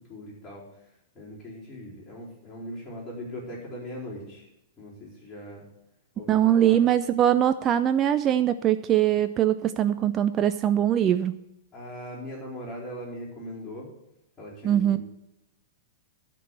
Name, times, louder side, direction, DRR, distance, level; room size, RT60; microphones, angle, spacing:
voice 1, 0.1-0.6 1.1-4.5 4.8-5.6 6.2-6.8 11.7-13.9 14.4-15.0, equal, 20° left, -8 dB, 4.2 m, -40 dB
voice 2, 6.3-11.3 14.6-15.0, right 11 dB, 25° right, 11 dB, 0.3 m, -22 dB
12.5 x 4.6 x 8.1 m, 0.86 s
figure-of-eight pair, 100°, 0 cm